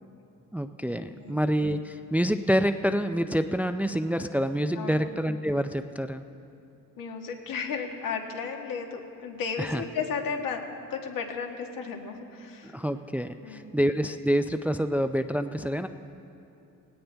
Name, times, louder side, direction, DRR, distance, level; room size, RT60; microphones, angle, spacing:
voice 1, 0.5-6.3 9.6-9.8 12.7-15.9, equal, 5° right, 9 dB, 0.4 m, -27 dB
voice 2, 7.0-12.8 13.4-13.8, left 5 dB, 75° left, 3 dB, 1.6 m, -34 dB
18.0 x 17.5 x 3.4 m, 2.7 s
cardioid pair, 100°, 33 cm